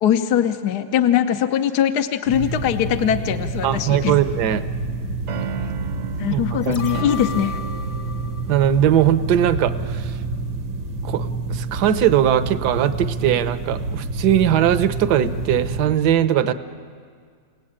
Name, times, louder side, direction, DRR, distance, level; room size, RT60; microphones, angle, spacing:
voice 1, 0.0-4.2 6.2-7.6, left 10 dB, 70° left, 8 dB, 1.3 m, -21 dB
sound 1, 2.3-16.0, right 3 dB, 85° right, 2.3 m, -28 dB
voice 2, 3.6-4.6 6.3-6.4 6.7-6.8 8.5-10.2 11.0-16.5, right 10 dB, 70° right, 12 dB, 1.4 m, -19 dB
sound 2, 4.3-4.6 5.3-8.9, right 8 dB, 55° right, 1.0 m, -35 dB
sound 3, 6.6-9.8 10.1-10.2, left 5 dB, 40° left, 0.5 m, -36 dB
30.0 x 18.0 x 8.8 m, 2.1 s
omnidirectional pair, 1.9 m